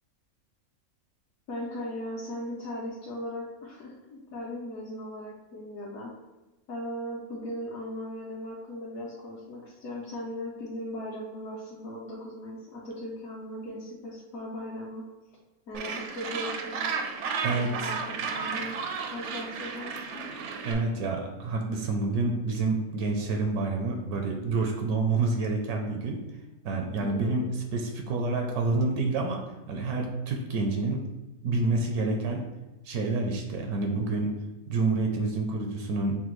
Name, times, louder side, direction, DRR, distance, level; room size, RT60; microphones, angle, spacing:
voice 1, 1.5-6.1 6.7-15.0 15.7-16.9 17.5-18.8 19.1-20.3 27.0-27.4, left 1 dB, 70° left, -6 dB, 1.2 m, -38 dB
Gull seagull, 15.7-20.7, right 5 dB, 65° right, 0.7 m, -33 dB
voice 2, 17.4-17.9 20.6-26.2 26.6-27.5 27.7-29.4 29.7-31.0 31.4-32.4 32.9-34.3 34.7-36.1, right 3 dB, 80° right, 2 dB, 1.1 m, -28 dB
5.9 x 2.2 x 3.0 m, 1.1 s
omnidirectional pair, 1.6 m